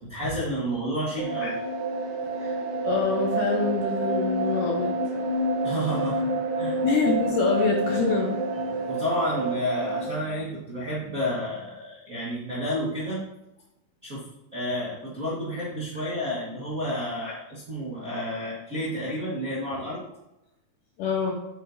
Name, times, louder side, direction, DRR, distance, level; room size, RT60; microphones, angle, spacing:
voice 1, 0.0-1.6 5.6-6.2 6.6-6.8 8.7-13.2 14.0-14.2 14.5-20.0, equal, 50° right, -8 dB, 1.0 m, -30 dB
sound 1, 1.2-10.1, right 2 dB, 70° right, 2.4 m, -28 dB
voice 2, 2.8-5.0 6.8-8.4 17.2-17.3 21.0-21.3, left 5 dB, 75° left, 0 dB, 2.0 m, -26 dB
8.5 x 7.5 x 2.8 m, 0.89 s
omnidirectional pair, 4.5 m